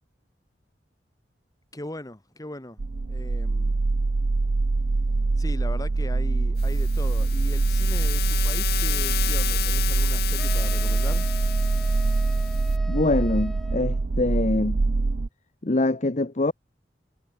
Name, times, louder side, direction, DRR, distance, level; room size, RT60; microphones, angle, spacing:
voice 1, 1.7-2.8 3.1-3.8 5.4-11.3, left 1 dB, 20° left, 2.4 m, -39 dB
sound 1, 2.8-15.3, right 3 dB, 55° right, 0.6 m, -24 dB
sound 2, 6.6-12.8, left 12 dB, 60° left, 2.4 m, -32 dB
sound 3, 10.4-14.0, equal, ahead, 3.7 m, -42 dB
voice 2, 12.9-14.8 15.6-16.5, left 2 dB, 40° left, 0.9 m, -24 dB
head